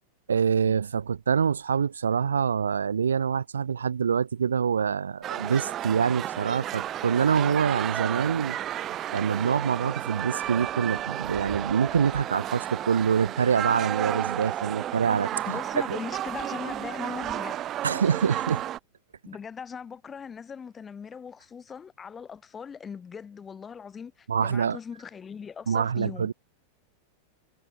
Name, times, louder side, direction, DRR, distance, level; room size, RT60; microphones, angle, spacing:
voice 1, 0.3-8.6 9.1-15.6 15.9-16.0 17.8-18.6 24.3-24.8 25.7-26.3, right 7 dB, 70° right, 0.9 m, -25 dB
sound 1, 5.2-18.8, right 12 dB, 30° right, 0.6 m, -32 dB
voice 2, 15.4-17.6 19.2-26.3, left 6 dB, 20° left, 6.6 m, -40 dB
figure-of-eight pair, 90°, 0 cm